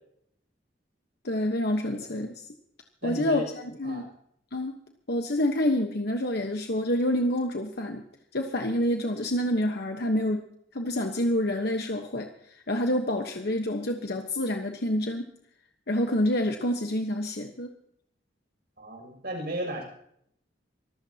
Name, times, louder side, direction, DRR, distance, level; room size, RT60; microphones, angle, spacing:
voice 1, 1.2-2.5 3.0-4.0 4.5-4.8 5.1-8.0 8.3-10.5 10.7-15.2 15.9-17.7, left 1 dB, 60° left, 4 dB, 1.2 m, -27 dB
voice 2, 3.0-3.5 3.8-4.1 18.8-19.8, right 1 dB, 60° right, 2 dB, 6.6 m, -35 dB
24.5 x 15.0 x 2.9 m, 0.71 s
head